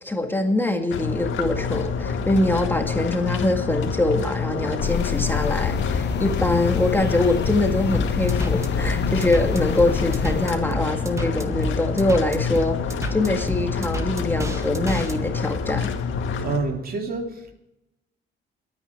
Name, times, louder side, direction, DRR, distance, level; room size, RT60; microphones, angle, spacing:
voice 1, 0.0-12.8 13.1-15.9, left 1 dB, 10° left, 3 dB, 1.9 m, -23 dB
sound 1, 0.9-16.6, left 5 dB, 75° left, 1.9 m, -27 dB
sound 2, 4.8-10.5, left 8 dB, 60° left, 1.3 m, -27 dB
sound 3, 7.9-15.2, equal, 15° right, 1.8 m, -30 dB
voice 2, 16.4-17.5, right 3 dB, 50° right, 3 dB, 3.0 m, -28 dB
22.0 x 9.6 x 4.7 m, 0.89 s
cardioid pair, 90°, 20 cm